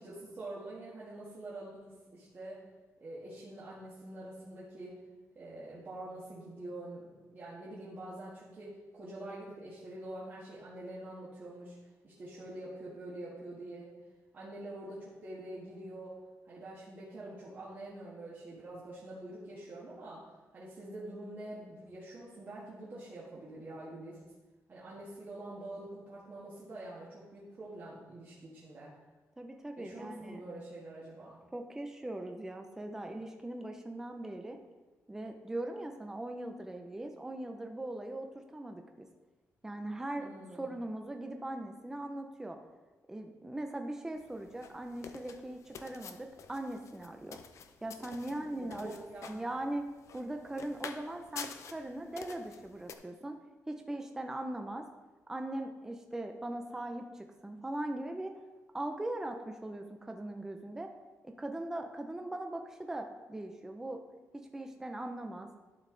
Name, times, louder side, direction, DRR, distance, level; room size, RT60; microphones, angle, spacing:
voice 1, 0.0-2.6 3.0-5.0 5.4-13.9 14.3-16.1 16.4-24.2 24.7-28.9 29.8-31.4 40.2-40.8 48.4-49.4, right 1 dB, 35° right, -7 dB, 1.6 m, -46 dB
voice 2, 29.4-30.4 31.5-34.6 35.1-39.1 39.6-40.3 40.5-42.6 43.1-47.4 47.8-53.4 53.7-54.9 55.3-58.3 58.7-60.9 61.2-64.0 64.5-65.5, right 1 dB, 10° right, 4 dB, 0.5 m, -40 dB
sound 1, 44.2-52.9, left 6 dB, 60° left, 0.6 m, -49 dB
11.5 x 5.5 x 3.8 m, 1.2 s
wide cardioid pair, 160°, 6 cm